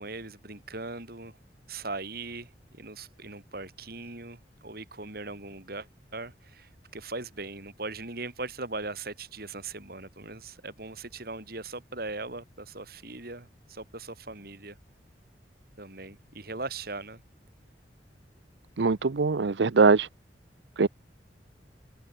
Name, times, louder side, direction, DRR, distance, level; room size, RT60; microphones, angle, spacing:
voice 1, 0.0-1.4 1.7-14.8 15.8-17.2, right 3 dB, 60° right, 4.5 m, -39 dB
voice 2, 18.8-20.1 20.8-20.9, right 4 dB, 80° right, 0.7 m, -22 dB
head